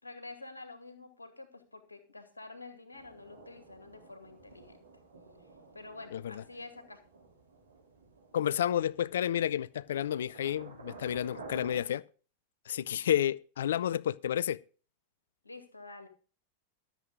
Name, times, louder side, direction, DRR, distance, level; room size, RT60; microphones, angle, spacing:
voice 1, 0.0-4.8 5.7-7.0 15.4-16.1, left 3 dB, 80° left, 2.1 m, -48 dB
thunder in the mountains, 2.9-11.8, right 3 dB, 75° right, 3.1 m, -52 dB
voice 2, 6.1-6.4 8.3-12.0 12.7-14.6, left 10 dB, 60° left, 0.4 m, -31 dB
13.5 x 7.7 x 5.1 m
figure-of-eight pair, 90°, 0 cm